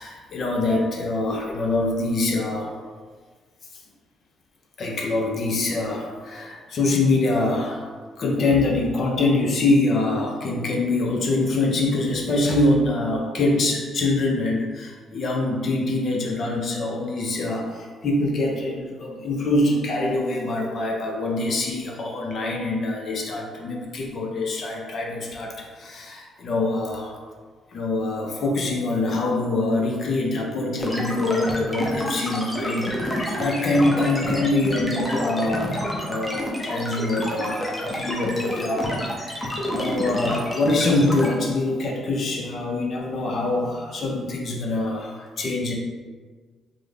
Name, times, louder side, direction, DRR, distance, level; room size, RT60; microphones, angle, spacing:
voice 1, 0.0-2.7 4.8-7.9 8.2-27.2 27.7-45.7, left 2 dB, 55° left, 0 dB, 0.5 m, -24 dB
sound 1, 30.8-41.3, equal, 15° left, 0.6 m, -28 dB
3.5 x 2.0 x 3.3 m, 1.5 s
cardioid pair, 90°, 0 cm